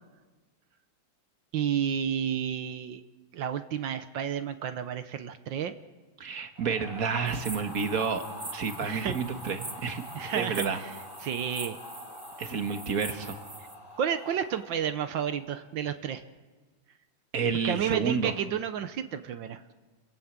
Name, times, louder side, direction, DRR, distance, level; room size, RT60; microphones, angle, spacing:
voice 1, 1.5-3.0 3.3-5.7 8.8-9.2 10.1-11.8 14.0-16.2 17.6-19.6, right 8 dB, 70° right, 10 dB, 1.5 m, -31 dB
voice 2, 6.2-8.2 8.5-10.0 10.4-10.8 12.4-13.4 17.3-18.3, right 6 dB, 50° right, 7 dB, 1.8 m, -30 dB
sound 1, 6.6-15.7, left 1 dB, 70° left, 6.1 m, -45 dB
sound 2, 7.3-13.7, right 2 dB, 20° right, 1.1 m, -44 dB
28.5 x 16.5 x 7.4 m, 1.3 s
omnidirectional pair, 2.2 m